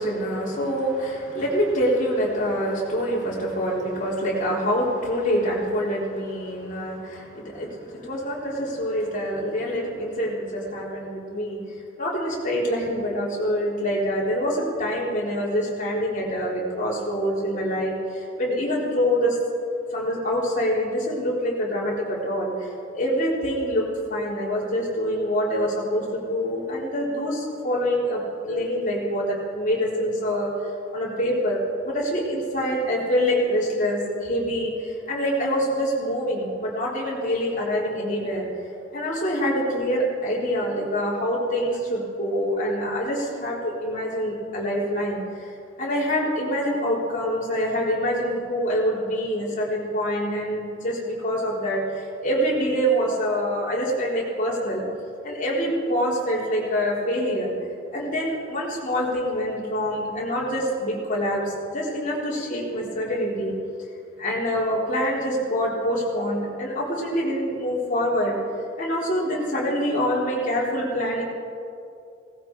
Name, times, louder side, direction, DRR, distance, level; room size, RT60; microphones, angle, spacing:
voice 1, 0.0-11.6 12.0-19.4 19.9-28.2 28.5-30.5 30.9-38.5 38.9-54.8 55.2-57.5 57.9-63.5 64.2-68.4 68.8-71.2, equal, 40° left, -5 dB, 4.0 m, -25 dB
18.0 x 16.0 x 4.8 m, 2.5 s
head